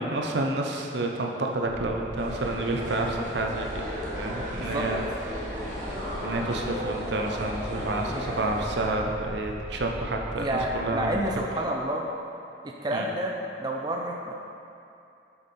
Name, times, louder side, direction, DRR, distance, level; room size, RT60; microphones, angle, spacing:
voice 1, 0.0-3.8 4.1-5.0 6.2-11.5 12.9-13.1, right 2 dB, 70° right, 1 dB, 0.7 m, -29 dB
sound 1, 1.6-11.4, equal, 50° left, 1.4 m, -40 dB
sound 2, 2.2-8.9, equal, 40° right, 1.3 m, -35 dB
voice 2, 4.6-4.9 8.1-8.3 10.4-12.0 12.6-14.3, right 1 dB, 20° right, -1 dB, 0.4 m, -30 dB
6.8 x 5.4 x 4.2 m, 2.7 s
head